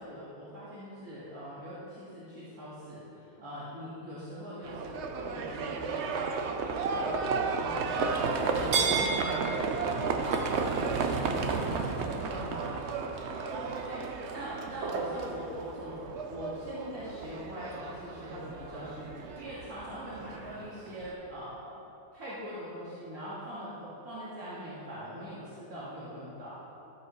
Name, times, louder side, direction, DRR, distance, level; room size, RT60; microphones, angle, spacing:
voice 1, 0.0-12.7 13.9-15.9 16.3-21.8 22.1-26.6, equal, 85° right, -11 dB, 2.4 m, -42 dB
Livestock farm animals working animals, 4.6-21.1, right 4 dB, 60° right, 0.9 m, -32 dB
13.0 x 8.2 x 3.1 m, 2.8 s
omnidirectional pair, 1.5 m